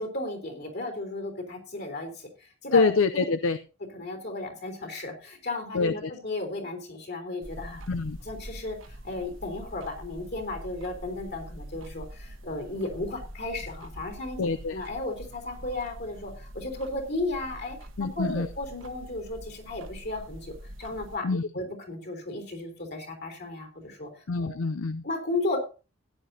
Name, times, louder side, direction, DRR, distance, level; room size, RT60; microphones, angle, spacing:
voice 1, 0.0-3.3 3.9-7.8 8.2-14.4 14.7-20.5 20.8-21.3 21.5-24.5 25.0-25.6, left 2 dB, 50° left, 4 dB, 3.6 m, -34 dB
voice 2, 2.7-3.6 5.7-6.1 7.9-8.2 14.4-14.8 18.0-18.5 21.2-21.5 24.3-25.0, left 4 dB, 75° left, 11 dB, 0.5 m, -25 dB
sound 1, 7.4-21.2, right 1 dB, 70° right, 1.3 m, -44 dB
16.0 x 10.0 x 2.8 m, 0.33 s
head